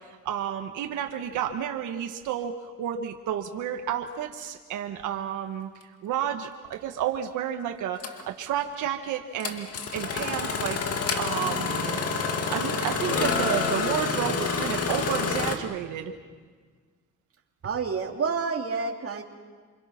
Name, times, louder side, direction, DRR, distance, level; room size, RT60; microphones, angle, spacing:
voice 1, 0.2-5.7 6.0-9.7 9.9-10.8 11.2-12.0 12.5-16.1, right 10 dB, 85° right, 4 dB, 1.5 m, -31 dB
Engine starting, 6.7-6.8 8.0-8.2 9.4-15.6, left 5 dB, 50° left, 2.3 m, -28 dB
voice 2, 17.6-19.2, right 5 dB, 50° right, 3 dB, 2.9 m, -29 dB
28.5 x 26.0 x 5.9 m, 1.5 s
cardioid pair, 90°, 30 cm